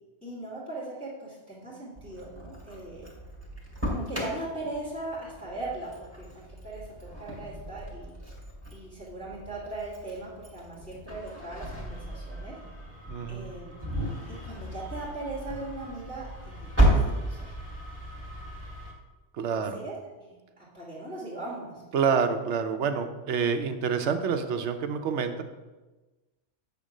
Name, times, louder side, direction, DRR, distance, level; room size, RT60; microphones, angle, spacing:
voice 1, 0.2-3.1 3.8-5.9 6.2-6.3 6.6-8.1 8.7-12.5 13.3-13.8 14.3-17.0 17.3-17.6 19.6-21.8, right 2 dB, 5° left, -10 dB, 2.4 m, -39 dB
Engine starting, 2.0-18.9, right 1 dB, 10° right, 2.2 m, -33 dB
voice 2, 13.1-13.5 19.3-19.8 21.9-25.4, right 6 dB, 70° right, 7 dB, 1.0 m, -27 dB
8.2 x 3.7 x 6.3 m, 1.2 s
omnidirectional pair, 1.3 m